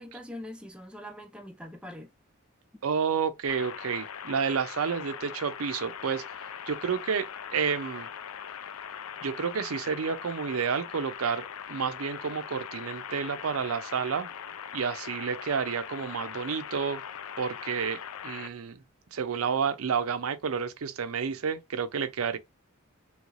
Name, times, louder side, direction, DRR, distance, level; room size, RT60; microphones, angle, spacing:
voice 1, 0.0-2.1, left 1 dB, 5° right, 0.5 m, -43 dB
voice 2, 2.8-6.2 6.7-8.1 9.2-14.3 14.7-17.0 17.4-18.8 19.1-22.4, right 6 dB, 85° right, 0.5 m, -30 dB
sound 1, 3.5-18.5, left 8 dB, 90° left, 0.4 m, -41 dB
3.1 x 3.1 x 2.4 m
head